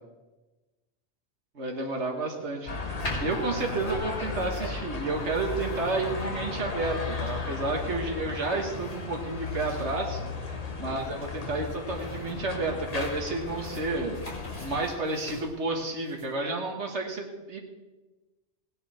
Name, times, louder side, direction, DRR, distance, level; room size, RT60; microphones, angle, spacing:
voice 1, 1.6-14.2 14.6-17.6, right 3 dB, 90° right, 1 dB, 1.8 m, -31 dB
sound 1, 2.7-14.8, left 4 dB, 35° left, 1.1 m, -35 dB
sound 2, 3.0-16.3, equal, 65° left, 4.2 m, -44 dB
17.5 x 10.0 x 4.3 m, 1.2 s
omnidirectional pair, 1.1 m